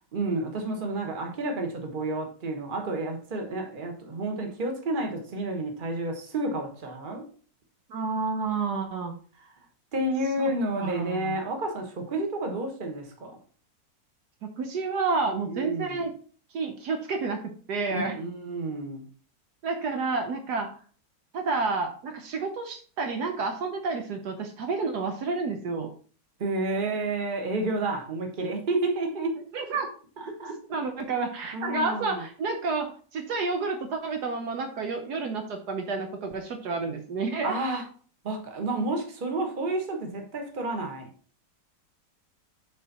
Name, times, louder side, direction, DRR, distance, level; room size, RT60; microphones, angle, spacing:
voice 1, 0.0-7.2 9.9-13.3 15.5-16.0 17.9-19.0 26.4-29.4 30.2-30.6 31.5-32.2 37.4-37.8 38.2-41.1, right 2 dB, 30° right, 3 dB, 1.3 m, -30 dB
voice 2, 7.9-9.1 10.4-10.5 10.8-11.4 14.4-16.1 16.5-18.2 19.6-20.7 21.3-25.9 29.5-29.9 30.7-37.6, right 4 dB, 70° right, 5 dB, 1.3 m, -30 dB
7.2 x 4.3 x 4.0 m, 0.43 s
omnidirectional pair, 1.9 m